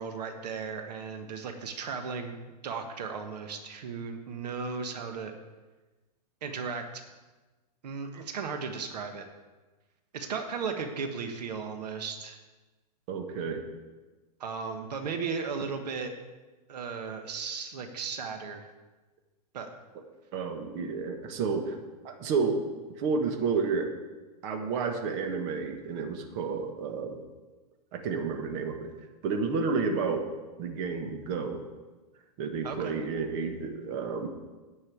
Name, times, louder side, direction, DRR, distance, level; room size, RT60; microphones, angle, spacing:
voice 1, 0.0-2.3 2.6-5.3 6.4-6.8 7.8-9.2 10.1-12.4 14.4-16.1 16.7-18.7 19.5-19.7 32.6-32.9, right 5 dB, 85° right, 5 dB, 1.4 m, -35 dB
voice 2, 13.1-13.6 20.3-21.8 22.0-22.6 23.0-23.9 24.4-27.2 27.9-28.9 29.2-30.2 30.6-31.6 32.4-34.3, right 5 dB, 45° right, 5 dB, 1.4 m, -30 dB
9.8 x 5.6 x 8.4 m, 1.2 s
supercardioid pair, 145°, 20 cm